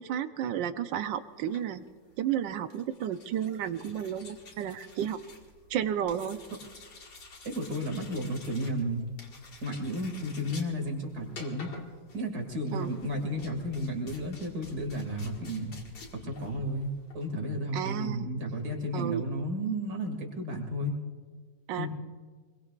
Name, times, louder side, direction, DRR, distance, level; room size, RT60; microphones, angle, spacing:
voice 1, 0.0-1.8 2.2-5.2 5.7-6.4 12.7-12.9 17.7-18.2 18.9-19.3 21.7-21.9, right 9 dB, 85° right, 10 dB, 1.4 m, -32 dB
sound 1, 1.3-17.3, left 3 dB, 75° left, 2.5 m, -50 dB
voice 2, 7.4-9.1 9.6-11.7 12.1-15.7 16.1-21.0 21.8-21.9, equal, 55° right, 2 dB, 2.8 m, -33 dB
25.5 x 21.5 x 2.5 m, 1.5 s
omnidirectional pair, 2.0 m